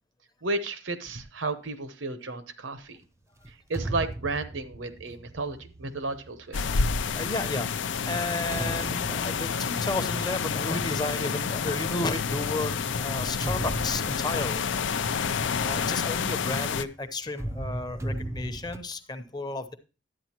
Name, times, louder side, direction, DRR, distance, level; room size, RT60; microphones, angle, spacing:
voice 1, 0.4-3.0 3.5-6.7, right 3 dB, 80° right, 11 dB, 1.0 m, -33 dB
sound 1, 3.4-7.2 7.9-11.5 12.8-16.8 17.3-18.8, right 1 dB, 15° right, 0.5 m, -38 dB
sound 2, 6.5-16.8, left 6 dB, 70° left, 0.5 m, -29 dB
voice 2, 7.0-14.6 15.6-19.7, left 2 dB, 20° left, 9 dB, 0.8 m, -33 dB
11.5 x 8.9 x 2.9 m, 0.33 s
head